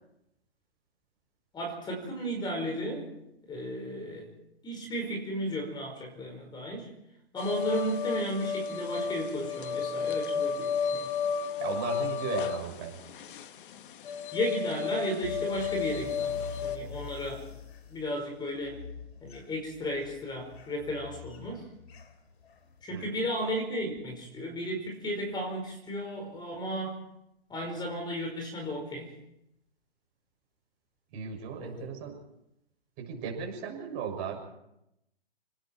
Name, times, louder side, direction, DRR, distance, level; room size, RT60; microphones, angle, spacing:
voice 1, 1.5-3.1 3.5-4.3 4.6-6.9 7.3-11.1 14.3-17.5 17.9-18.8 19.2-21.6 22.8-27.0 27.5-29.1 31.6-31.9, equal, 15° left, 2 dB, 5.1 m, -34 dB
sound 1, 7.4-16.8, left 6 dB, 55° left, 1.6 m, -32 dB
voice 2, 11.6-13.0 22.9-23.1 31.1-32.2 33.0-34.4, right 7 dB, 35° right, 2 dB, 6.8 m, -36 dB
sound 2, 15.2-22.9, left 6 dB, 75° left, 3.4 m, -46 dB
29.5 x 19.5 x 4.7 m, 0.81 s
hypercardioid pair, 140°, 31 cm